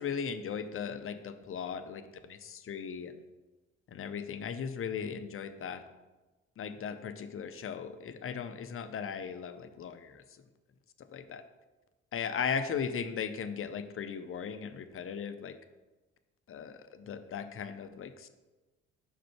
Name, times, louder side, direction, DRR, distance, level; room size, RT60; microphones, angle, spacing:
voice 1, 0.0-3.2 3.9-5.8 6.6-10.4 11.0-11.4 12.1-15.6 16.5-18.3, left 7 dB, 35° left, 10 dB, 0.6 m, -37 dB
5.0 x 4.4 x 5.8 m, 1.2 s
hypercardioid pair, 45°, 36 cm